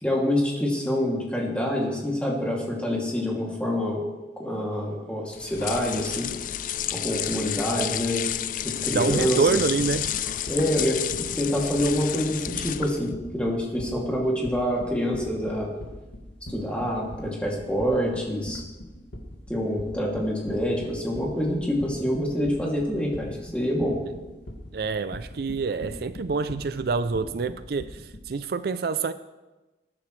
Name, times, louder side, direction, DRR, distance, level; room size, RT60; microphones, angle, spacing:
voice 1, 0.0-4.1 4.4-6.3 6.9-8.2 8.6-9.6 10.5-11.0 11.3-15.7 16.5-18.6 19.5-24.0, equal, 5° left, 2.5 m, -26 dB
sound 1, 5.3-13.1, left 11 dB, 45° left, 0.4 m, -31 dB
voice 2, 8.9-10.1 24.7-29.1, right 4 dB, 60° right, 0.4 m, -26 dB
sound 2, 9.1-28.3, left 1 dB, 90° left, 2.1 m, -40 dB
20.0 x 10.5 x 3.2 m
head